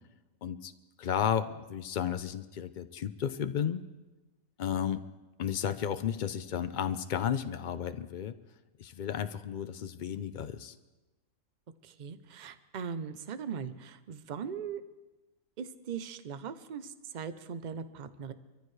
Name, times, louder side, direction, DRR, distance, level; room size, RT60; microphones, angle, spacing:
voice 1, 0.4-0.7 1.0-3.8 4.6-5.0 5.4-8.3 8.8-10.8, left 8 dB, 85° left, 11 dB, 0.4 m, -33 dB
voice 2, 11.8-14.8 15.6-18.3, right 7 dB, 50° right, 12 dB, 0.6 m, -40 dB
24.5 x 14.0 x 3.2 m, 1.1 s
omnidirectional pair, 1.5 m